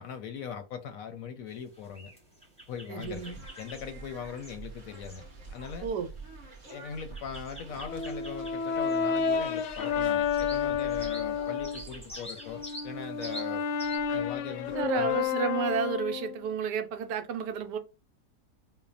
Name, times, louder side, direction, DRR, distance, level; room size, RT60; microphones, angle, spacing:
voice 1, 0.0-2.1 2.7-5.9 6.7-13.7 14.1-15.2, left 7 dB, 65° left, 0.9 m, -40 dB
sound 1, 1.5-14.0, equal, 5° left, 0.6 m, -48 dB
voice 2, 2.9-3.4 5.8-6.1 14.7-17.8, right 7 dB, 85° right, 1.2 m, -31 dB
sound 2, 3.0-15.3, right 3 dB, 35° right, 0.9 m, -48 dB
Brass instrument, 7.9-11.8 12.4-16.5, left 7 dB, 90° left, 1.2 m, -30 dB
5.5 x 2.1 x 2.5 m
omnidirectional pair, 1.8 m